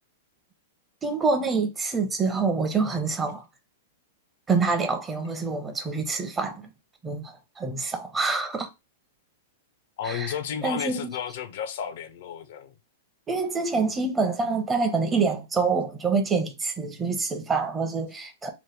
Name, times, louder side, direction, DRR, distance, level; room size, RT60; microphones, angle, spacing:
voice 1, 1.0-3.4 4.5-6.7 7.0-8.7 10.0-10.3 10.6-11.1 13.3-18.5, right 4 dB, 15° right, 0.7 m, -26 dB
voice 2, 10.0-12.7, left 8 dB, 65° left, 0.5 m, -32 dB
2.9 x 2.1 x 3.3 m
hypercardioid pair, 130°, 0 cm